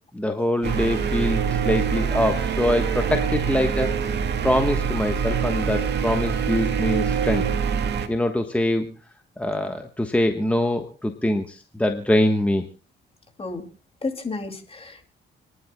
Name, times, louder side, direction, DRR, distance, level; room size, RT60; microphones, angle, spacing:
voice 1, 0.1-4.2 4.4-7.5 8.1-8.9 9.4-12.7, left 1 dB, 5° left, 5 dB, 1.3 m, -24 dB
sound 1, 0.6-8.1, right 7 dB, 60° right, 2.0 m, -24 dB
voice 2, 14.0-15.1, left 3 dB, 30° left, 5 dB, 2.6 m, -32 dB
30.0 x 11.0 x 2.3 m, 0.34 s
cardioid pair, 90°, 20 cm